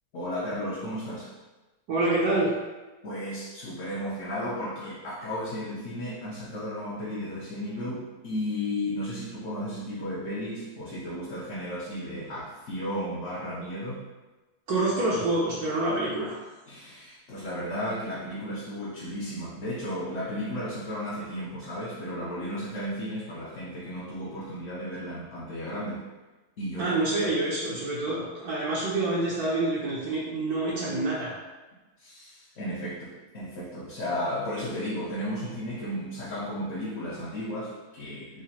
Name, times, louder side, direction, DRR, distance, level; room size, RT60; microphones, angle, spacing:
voice 1, 0.1-1.3 3.0-14.0 16.7-26.0 26.6-27.2 32.0-38.4, equal, 60° left, -7 dB, 0.9 m, -34 dB
voice 2, 1.9-2.5 14.7-16.4 26.8-31.3, right 2 dB, 70° right, -7 dB, 1.2 m, -27 dB
4.9 x 2.1 x 2.7 m, 1.2 s
omnidirectional pair, 1.7 m